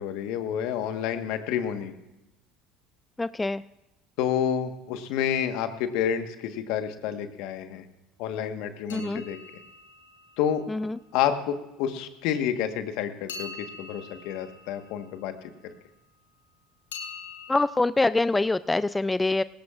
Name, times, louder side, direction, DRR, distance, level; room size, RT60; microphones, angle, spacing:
voice 1, 0.0-1.9 4.2-7.8 8.2-9.4 10.4-10.6 11.1-15.3 15.6-15.7, left 9 dB, 65° left, 8 dB, 1.3 m, -29 dB
voice 2, 3.2-3.6 8.9-9.2 10.7-11.0 17.5-19.4, left 2 dB, 15° left, 16 dB, 0.3 m, -25 dB
sound 1, 8.9-11.0 13.3-15.7 16.9-17.6, left 4 dB, 85° left, 1.3 m, -43 dB
19.0 x 17.0 x 2.4 m, 0.97 s
hypercardioid pair, 75°, 0 cm